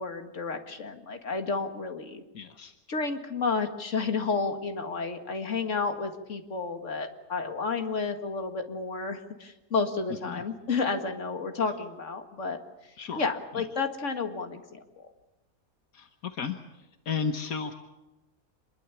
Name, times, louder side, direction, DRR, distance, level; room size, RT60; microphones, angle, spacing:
voice 1, 0.0-2.2 2.9-12.6 13.2-15.1, left 4 dB, 55° left, 6 dB, 2.3 m, -31 dB
voice 2, 2.3-2.7 10.2-10.4 13.0-13.2 15.9-16.6 17.1-17.7, left 6 dB, 75° left, 7 dB, 1.6 m, -33 dB
26.5 x 22.0 x 7.2 m, 1.0 s
omnidirectional pair, 1.5 m